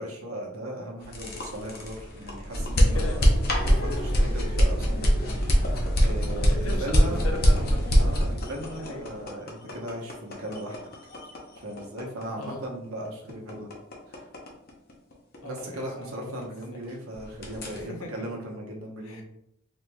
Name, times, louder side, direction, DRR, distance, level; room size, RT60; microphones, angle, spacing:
voice 1, 0.0-3.2 3.7-5.7 6.0-7.2 7.9-10.8 11.6-13.7 14.1-14.3 15.4-19.2, equal, 85° right, -1 dB, 0.9 m, -37 dB
sound 1, 1.0-16.8 17.1-17.8, equal, 45° left, 0.7 m, -24 dB
voice 2, 2.8-4.3 6.3-7.9 8.8-9.0 12.4-12.6 13.2-13.3 15.4-16.4 16.7-16.8 17.7-18.3 19.0-19.2, left 3 dB, 80° left, 1 dB, 0.8 m, -39 dB
4.1 x 3.1 x 2.2 m, 0.78 s
head